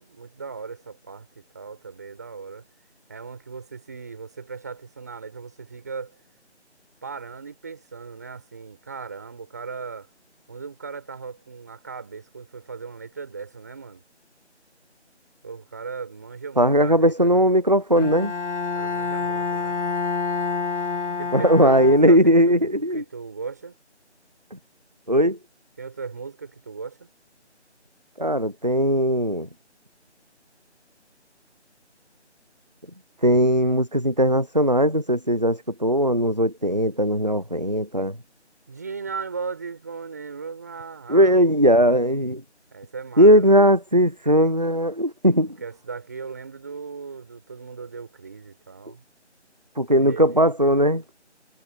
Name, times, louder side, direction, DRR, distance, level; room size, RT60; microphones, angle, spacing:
voice 1, 0.0-2.6 3.1-6.2 7.0-10.1 10.5-14.0 15.4-17.5 18.8-19.8 21.2-23.8 25.8-27.1 38.7-41.7 42.7-43.7 45.6-49.0 49.9-50.7, right 5 dB, 15° right, 5.5 m, -37 dB
voice 2, 16.6-18.3 21.3-23.0 24.5-24.6 25.1-25.4 28.2-29.5 33.2-38.2 41.1-42.4 43.2-45.6 49.8-51.0, equal, 40° right, 0.6 m, -19 dB
Bowed string instrument, 18.0-22.5, left 4 dB, 85° left, 3.2 m, -28 dB
figure-of-eight pair, 180°, 35 cm